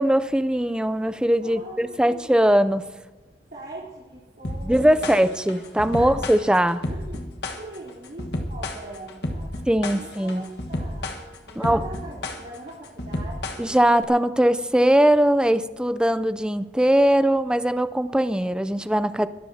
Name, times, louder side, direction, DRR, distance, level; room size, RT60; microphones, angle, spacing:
voice 1, 0.0-2.9 4.6-6.8 9.7-10.5 11.6-11.8 13.6-19.3, right 1 dB, 5° right, 12 dB, 0.4 m, -20 dB
voice 2, 1.4-2.4 3.5-5.2 6.0-6.2 6.9-7.2 7.6-9.6 9.9-11.2 11.5-13.7, right 2 dB, 55° right, -9 dB, 3.6 m, -41 dB
sound 1, 4.4-14.0, left 1 dB, 65° left, 1.4 m, -31 dB
23.0 x 13.0 x 2.8 m, 1.3 s
head